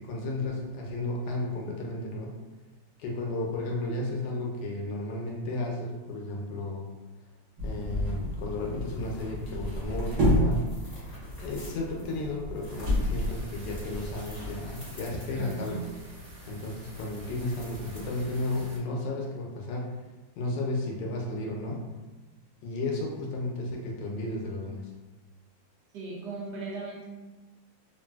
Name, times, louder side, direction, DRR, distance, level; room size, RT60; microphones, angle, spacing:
voice 1, 0.1-2.4 3.0-6.9 7.6-10.6 11.4-15.8 16.5-20.0 20.4-21.9 22.6-24.9, left 2 dB, 75° left, -1 dB, 1.1 m, -33 dB
sound 1, 7.6-14.6, left 1 dB, 45° right, 1.2 m, -31 dB
sound 2, 8.6-18.5, right 1 dB, 30° left, 0.9 m, -44 dB
sound 3, 12.7-18.8, right 1 dB, 90° right, 1.6 m, -49 dB
voice 2, 15.4-15.8 25.9-27.1, right 4 dB, 70° right, -3 dB, 1.2 m, -37 dB
3.2 x 2.6 x 2.2 m, 1.2 s
omnidirectional pair, 2.0 m